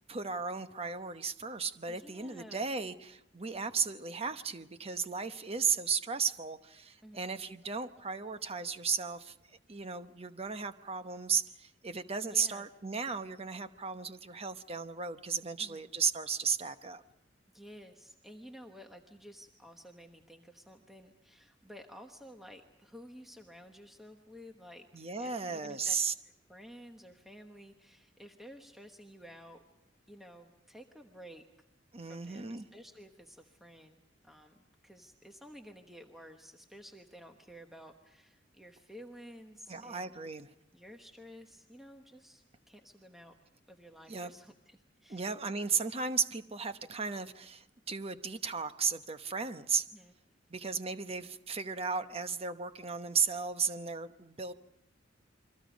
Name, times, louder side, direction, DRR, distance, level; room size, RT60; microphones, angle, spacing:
voice 1, 0.1-17.0 24.9-26.1 31.9-32.7 39.7-40.5 44.1-44.3 45.1-49.9 50.5-54.5, right 5 dB, 30° right, 10 dB, 0.9 m, -35 dB
voice 2, 1.9-2.7 7.0-7.3 12.2-12.7 15.6-15.9 17.5-24.9 25.2-25.9 26.5-29.6 30.1-31.5 32.0-40.1 40.7-43.3 43.7-45.2 49.9-50.1, equal, ahead, 3 dB, 1.1 m, -53 dB
29.5 x 23.5 x 5.2 m, 0.84 s
head